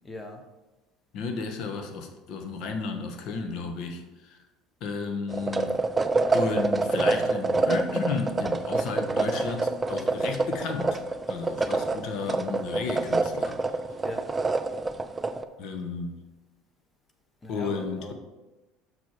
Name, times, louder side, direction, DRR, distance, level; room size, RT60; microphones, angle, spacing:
voice 1, 0.0-0.4 14.0-14.5 17.4-18.1, left 1 dB, 20° left, 5 dB, 1.1 m, -40 dB
voice 2, 1.1-4.4 4.8-5.8 6.3-11.0 11.3-13.6 15.6-16.2 17.5-18.1, left 4 dB, 60° left, 5 dB, 1.1 m, -33 dB
sound 1, 5.3-15.4, right 3 dB, 20° right, 0.5 m, -27 dB
6.1 x 4.8 x 5.8 m, 1.1 s
supercardioid pair, 95°, 0 cm